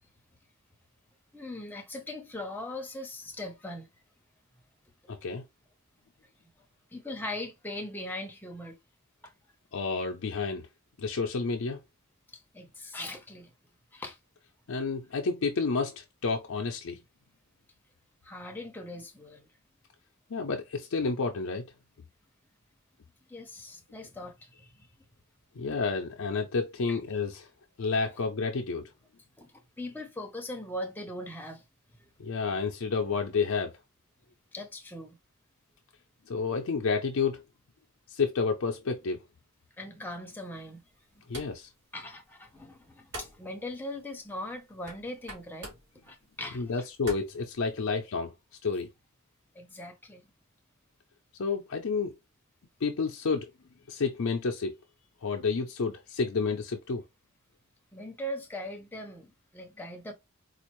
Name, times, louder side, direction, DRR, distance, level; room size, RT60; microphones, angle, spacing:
voice 1, 1.3-3.9 6.9-8.8 9.2-9.3 12.3-13.5 13.9-14.2 18.2-19.5 23.3-24.9 26.9-27.0 29.4-31.6 32.0-32.1 34.5-35.2 39.8-40.8 41.1-41.4 41.9-45.7 46.0-46.9 49.5-50.3 57.9-60.1, left 1 dB, 10° left, 0.8 m, -40 dB
voice 2, 5.1-5.4 9.7-10.7 11.0-11.8 14.7-17.0 20.3-21.6 25.5-27.5 27.8-28.8 32.2-33.7 36.3-37.4 38.1-39.2 41.3-41.7 46.5-48.3 48.6-48.9 51.4-52.1 52.8-53.5 53.9-54.7 55.2-57.0, left 4 dB, 70° left, 0.5 m, -30 dB
sound 1, 40.5-48.1, right 1 dB, 55° right, 1.7 m, -49 dB
4.3 x 2.4 x 3.0 m
head